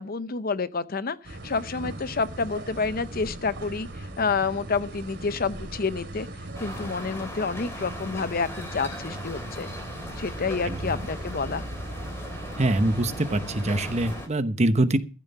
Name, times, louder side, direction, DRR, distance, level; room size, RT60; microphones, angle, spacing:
voice 1, 0.0-6.3 6.6-9.7 10.2-11.6, left 4 dB, 50° left, 0.7 m, -29 dB
sound 1, 1.2-14.2, right 1 dB, 60° right, 2.8 m, -38 dB
sound 2, 6.5-14.3, left 1 dB, 15° left, 3.4 m, -40 dB
voice 2, 12.6-15.0, right 1 dB, 35° right, 1.0 m, -24 dB
14.5 x 7.1 x 6.9 m
head